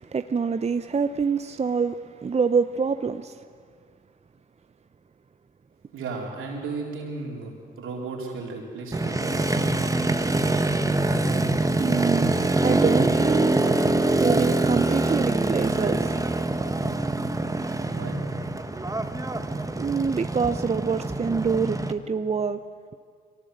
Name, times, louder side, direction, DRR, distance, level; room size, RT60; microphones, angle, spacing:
voice 1, 0.0-3.4 11.8-12.3 12.6-13.5 14.2-16.2 19.8-22.6, right 5 dB, 30° right, 10 dB, 0.7 m, -26 dB
voice 2, 5.9-7.5 7.8-9.5 17.9-18.2, right 3 dB, 80° right, -1 dB, 4.2 m, -34 dB
Motorcycle, 8.9-21.9, right 2 dB, 15° right, 1.3 m, -24 dB
22.5 x 18.0 x 8.1 m, 2.1 s
supercardioid pair, 55°, 21 cm